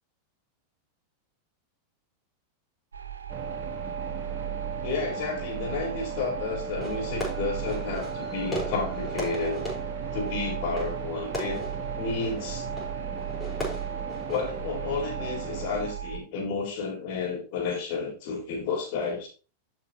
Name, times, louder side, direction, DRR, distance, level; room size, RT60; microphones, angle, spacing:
sound 1, 2.9-16.2, right 9 dB, 70° right, 1.0 m, -37 dB
sound 2, 3.3-15.9, right 5 dB, 35° right, 1.5 m, -37 dB
voice 1, 4.8-9.6 10.1-11.6 11.9-12.7 14.3-19.3, left 4 dB, 45° left, 0 dB, 3.9 m, -31 dB
Fireworks, 6.8-14.8, equal, 10° left, 5.2 m, -38 dB
12.0 x 6.1 x 3.0 m, 0.34 s
figure-of-eight pair, 90°, 0 cm